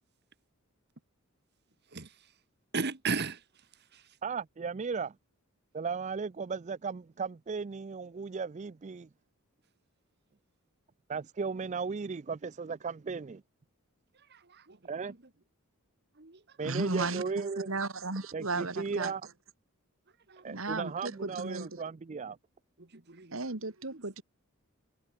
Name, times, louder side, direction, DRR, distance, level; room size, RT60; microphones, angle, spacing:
voice 1, 2.7-3.4 14.7-14.8 16.2-16.4 20.3-20.4 22.9-23.4 23.9-24.2, right 4 dB, 50° right, 1.8 m, -35 dB
voice 2, 4.2-5.1 5.7-9.1 11.1-13.4 14.9-15.1 16.6-17.7 18.3-19.2 20.4-22.4, right 5 dB, 35° right, 0.4 m, -36 dB
voice 3, 16.6-17.2 17.7-19.1 20.5-21.8 23.3-24.2, right 3 dB, 65° right, 2.4 m, -34 dB
head